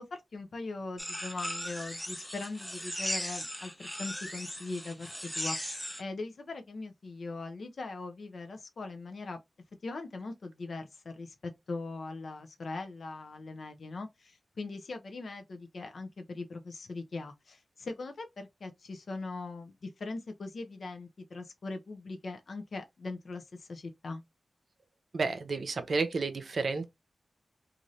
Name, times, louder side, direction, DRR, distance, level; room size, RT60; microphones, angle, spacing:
voice 1, 0.0-9.4 9.8-11.3 11.7-24.2, left 3 dB, 70° left, 0.5 m, -41 dB
sound 1, 1.0-6.0, equal, 5° left, 0.5 m, -38 dB
voice 2, 25.1-26.8, right 4 dB, 65° right, 0.6 m, -31 dB
2.6 x 2.5 x 3.0 m
cardioid pair, 65°, 0 cm